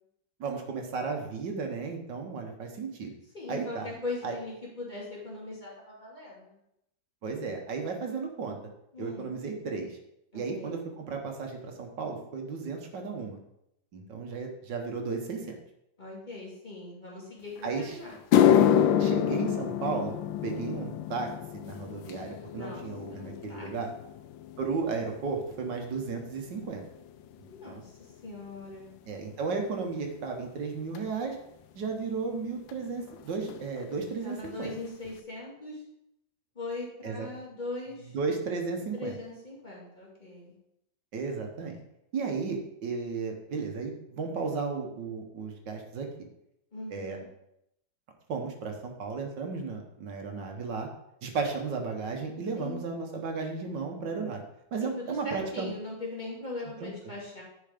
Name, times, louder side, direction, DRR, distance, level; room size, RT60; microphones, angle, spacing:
voice 1, 0.4-3.1 3.5-3.9 4.2-4.4 7.2-8.6 9.0-10.0 10.3-13.4 13.9-15.5 17.6-18.0 19.0-20.1 20.4-21.3 21.6-23.9 24.6-26.8 27.4-27.8 29.1-31.4 31.7-34.7 37.0-37.3 38.1-39.1 41.1-41.8 42.1-46.1 46.9-47.2 48.3-50.9 51.2-54.4 54.7-55.7 56.8-56.9, right 4 dB, 70° right, 3 dB, 1.7 m, -34 dB
voice 2, 3.3-6.6 8.9-9.3 10.3-10.8 16.0-18.5 22.5-22.8 23.1-23.7 27.5-27.9 28.2-28.9 34.2-35.8 36.6-38.1 38.9-40.5 46.7-47.3 52.5-52.8 54.8-57.4, left 2 dB, 25° left, -4 dB, 2.2 m, -40 dB
sound 1, 17.6-17.7 18.1-26.6 26.9-27.3 28.1-28.2 30.9-31.0 32.7-32.8 33.0-33.2 33.5-34.0 34.4-34.5 35.1-35.2, left 9 dB, 85° left, 1.3 m, -27 dB
10.5 x 4.5 x 5.0 m, 0.81 s
omnidirectional pair, 2.0 m